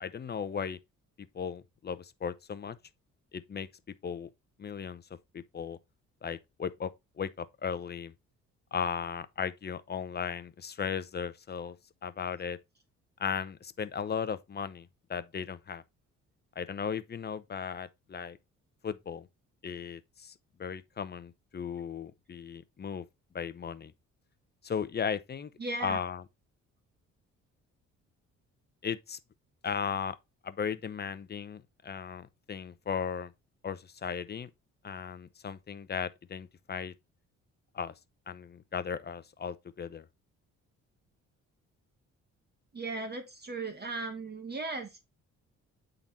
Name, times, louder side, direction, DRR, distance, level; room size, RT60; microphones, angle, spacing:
voice 1, 0.0-0.8 1.3-2.8 3.3-3.7 4.0-4.3 4.6-5.0 5.3-5.8 6.2-6.9 7.2-8.1 8.7-11.8 12.0-12.6 13.2-15.8 16.6-18.4 18.8-19.3 19.6-20.3 20.6-23.0 23.3-23.9 24.6-25.5 25.8-26.2 28.8-29.2 29.6-30.2 30.4-33.3 33.6-34.5 34.8-36.9 37.7-37.9 38.3-40.1, left 7 dB, 35° left, 0.7 m, -36 dB
voice 2, 25.6-26.0 42.7-45.1, right 3 dB, 35° right, 1.5 m, -37 dB
8.7 x 3.9 x 4.1 m
cardioid pair, 90°, 30 cm